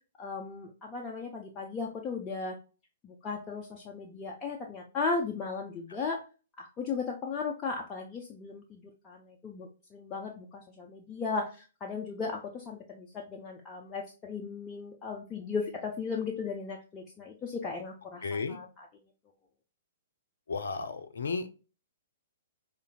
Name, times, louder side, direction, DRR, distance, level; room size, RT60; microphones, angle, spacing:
voice 1, 0.2-2.6 3.0-6.2 6.6-18.9, left 4 dB, 20° left, -1 dB, 0.5 m, -36 dB
voice 2, 18.2-18.6 20.5-21.5, left 4 dB, 65° left, 9 dB, 0.5 m, -33 dB
5.0 x 2.5 x 2.2 m, 0.34 s
figure-of-eight pair, 115°, 0 cm